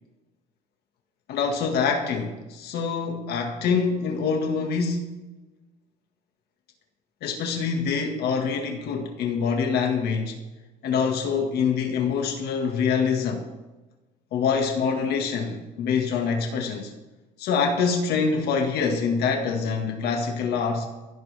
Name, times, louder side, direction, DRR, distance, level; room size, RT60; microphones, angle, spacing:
voice 1, 1.3-5.1 7.2-10.4 10.8-13.5 14.3-16.9 17.4-20.9, left 5 dB, 70° left, 1.9 m, -25 dB
27.5 x 12.0 x 3.5 m
cardioid pair, 110°, 17 cm